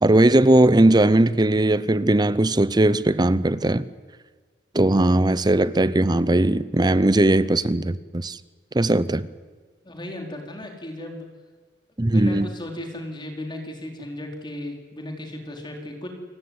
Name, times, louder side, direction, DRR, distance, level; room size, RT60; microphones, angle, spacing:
voice 1, 0.0-3.8 4.7-8.4 8.7-9.3 12.0-12.5, right 1 dB, 25° right, 0.7 m, -19 dB
voice 2, 9.8-11.3 12.1-16.1, left 1 dB, 25° left, 4.2 m, -35 dB
29.0 x 17.0 x 9.6 m
head